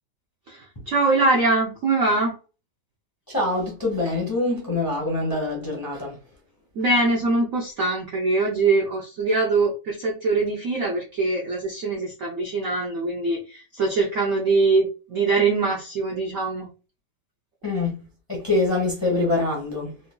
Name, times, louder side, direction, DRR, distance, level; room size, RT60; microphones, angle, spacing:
voice 1, 0.5-2.4 6.8-16.7, right 3 dB, 65° right, 0.8 m, -23 dB
voice 2, 3.3-6.2 17.6-20.0, left 2 dB, 15° left, 0.8 m, -25 dB
3.8 x 2.7 x 2.2 m
omnidirectional pair, 2.0 m